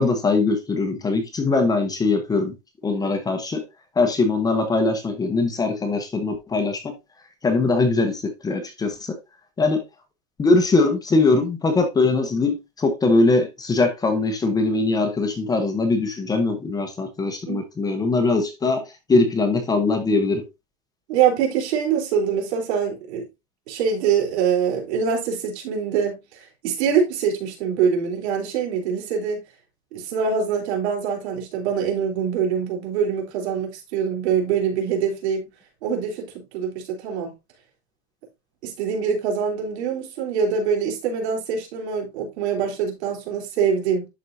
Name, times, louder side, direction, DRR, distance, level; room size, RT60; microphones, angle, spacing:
voice 1, 0.0-2.5 2.8-3.6 4.0-6.9 7.4-9.2 9.6-9.8 10.4-18.8 19.1-20.4, left 3 dB, 10° left, 0.9 m, -21 dB
voice 2, 21.1-23.2 23.7-29.4 29.9-35.5 35.8-37.3 38.6-44.1, right 7 dB, 85° right, 3.6 m, -24 dB
11.0 x 4.6 x 2.7 m
supercardioid pair, 160°, 32 cm